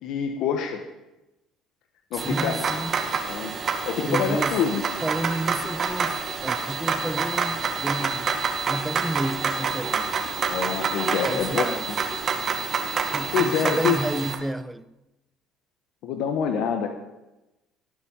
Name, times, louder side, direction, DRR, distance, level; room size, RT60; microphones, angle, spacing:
voice 1, 0.0-0.8 2.1-2.6 3.3-4.8 10.5-12.0 13.3-14.0 16.0-16.9, left 7 dB, 70° left, 1.4 m, -26 dB
voice 2, 2.1-3.0 4.1-4.6 5.0-8.3 8.7-10.1 11.2-11.8 13.1-14.9, right 1 dB, 10° right, 0.7 m, -31 dB
sound 1, 2.2-14.3, right 5 dB, 40° right, 2.3 m, -27 dB
19.0 x 7.4 x 7.5 m
supercardioid pair, 90°, 0 cm